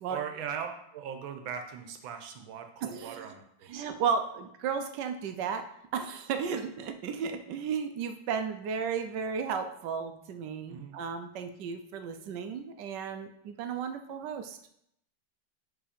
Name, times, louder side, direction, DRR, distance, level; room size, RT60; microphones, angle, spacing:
voice 1, 0.1-3.8 10.7-11.0, right 8 dB, 90° right, 6 dB, 1.6 m, -39 dB
voice 2, 2.8-3.3 3.7-5.7 5.9-14.6, right 6 dB, 70° right, 8 dB, 1.2 m, -34 dB
5.6 x 5.0 x 5.1 m, 0.74 s
omnidirectional pair, 2.2 m